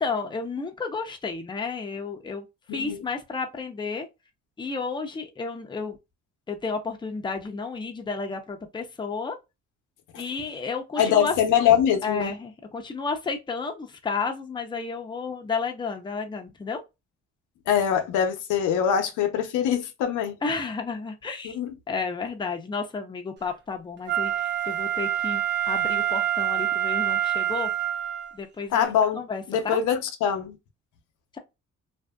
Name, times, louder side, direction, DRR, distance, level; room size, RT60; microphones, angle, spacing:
voice 1, 0.0-2.5 2.7-4.1 4.6-6.0 6.5-9.4 10.2-11.3 12.0-16.8 20.4-21.6 21.9-27.7 28.3-29.8 31.3-31.4, left 4 dB, 15° left, 0.5 m, -32 dB
voice 2, 2.7-3.0 11.0-12.3 17.7-20.4 21.4-21.7 28.7-29.2 29.5-30.6, left 8 dB, 85° left, 0.7 m, -23 dB
Wind instrument woodwind instrument, 24.1-28.3 28.8-28.9, right 11 dB, 35° right, 0.5 m, -26 dB
2.6 x 2.5 x 2.2 m
cardioid pair, 90°, 30 cm